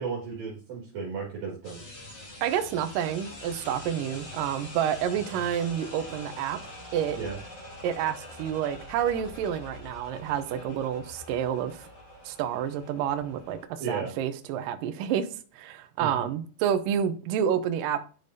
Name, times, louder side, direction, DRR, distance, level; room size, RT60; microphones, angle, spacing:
voice 1, 0.0-1.8 7.2-7.4 13.8-14.1 16.0-16.1, right 5 dB, 65° right, 3.4 m, -34 dB
sound 1, 1.6-13.7, left 1 dB, 35° left, 2.1 m, -44 dB
voice 2, 2.4-6.6 6.9-7.2 7.8-11.9 12.3-15.3 15.5-18.0, right 9 dB, 80° right, 2.0 m, -29 dB
10.5 x 5.0 x 2.7 m
omnidirectional pair, 4.6 m